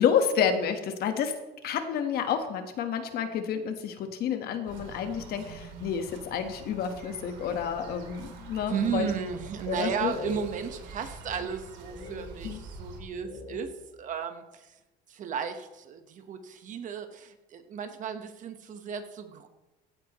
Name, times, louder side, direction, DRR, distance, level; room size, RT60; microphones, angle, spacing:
voice 1, 0.0-1.3 1.6-9.1 9.7-10.1 12.4-12.6, left 7 dB, 55° left, 7 dB, 1.3 m, -29 dB
sound 1, 4.7-13.0, right 3 dB, 75° right, 2.7 m, -46 dB
sound 2, 7.5-8.3 8.6-9.5 10.0-12.8 13.1-14.1, left 3 dB, 40° left, 1.5 m, -44 dB
voice 2, 8.7-13.7 14.0-14.7 15.1-19.5, right 7 dB, 45° right, 8 dB, 1.1 m, -34 dB
15.5 x 9.5 x 3.0 m, 1.0 s
cardioid pair, 135°, 19 cm